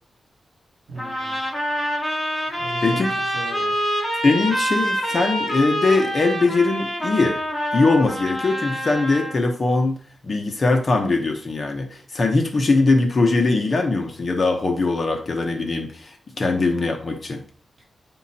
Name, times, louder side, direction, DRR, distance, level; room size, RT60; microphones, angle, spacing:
voice 1, 0.9-1.4 2.5-3.8 17.8-17.9, right 2 dB, 35° right, -2 dB, 4.7 m, -38 dB
sound 1, 1.0-9.4, equal, ahead, 2.3 m, -26 dB
voice 2, 4.2-7.4 7.7-10.0 10.2-17.4, left 3 dB, 35° left, 3 dB, 1.1 m, -21 dB
9.6 x 5.8 x 4.3 m, 0.42 s
wide cardioid pair, 180°, 0 cm